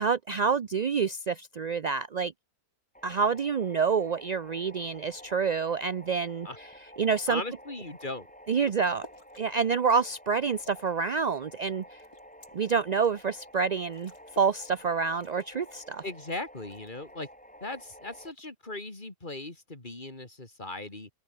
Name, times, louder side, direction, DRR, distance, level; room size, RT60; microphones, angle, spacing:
voice 1, 0.0-2.3 3.0-6.7 7.0-7.4 8.5-9.1 9.4-12.0 12.5-14.1 14.4-16.0, right 5 dB, 50° right, 0.5 m, -27 dB
sound 1, 2.9-18.3, equal, 5° left, 5.3 m, -51 dB
voice 2, 7.3-8.3 16.0-17.3 17.6-21.1, left 2 dB, 30° left, 3.9 m, -38 dB
sound 2, 7.9-8.1 8.5-9.5 9.9-11.0 11.3-13.2 13.6-13.7 13.9-14.6 14.9-15.0 15.2-16.3 16.7-17.2 18.1-18.6, left 2 dB, 75° left, 6.3 m, -53 dB
open air
omnidirectional pair, 1.6 m